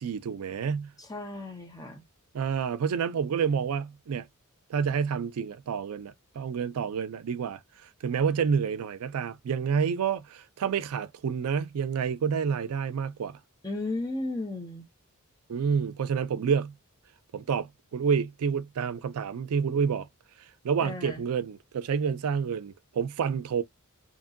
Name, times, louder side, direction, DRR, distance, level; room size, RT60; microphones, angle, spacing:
voice 1, 0.0-0.9 2.3-4.3 4.7-7.6 8.0-13.4 15.5-16.7 17.3-20.1 20.6-23.6, right 6 dB, 75° right, 0.4 m, -29 dB
voice 2, 1.0-2.0 13.6-14.9 20.8-21.2, left 2 dB, 15° left, 0.8 m, -34 dB
2.9 x 2.6 x 2.4 m
head